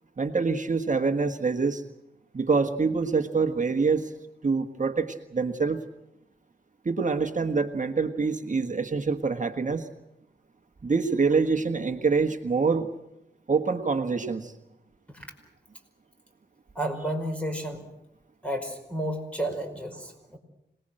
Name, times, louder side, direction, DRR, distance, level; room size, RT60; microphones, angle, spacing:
voice 1, 0.2-1.8 2.3-4.1 4.4-5.8 6.8-9.9 10.8-12.9 13.5-14.5, right 4 dB, 45° right, 6 dB, 1.5 m, -25 dB
voice 2, 16.7-17.9 18.4-20.4, right 1 dB, 5° left, 4 dB, 5.1 m, -32 dB
26.5 x 20.0 x 7.8 m, 0.86 s
wide cardioid pair, 110°, 19 cm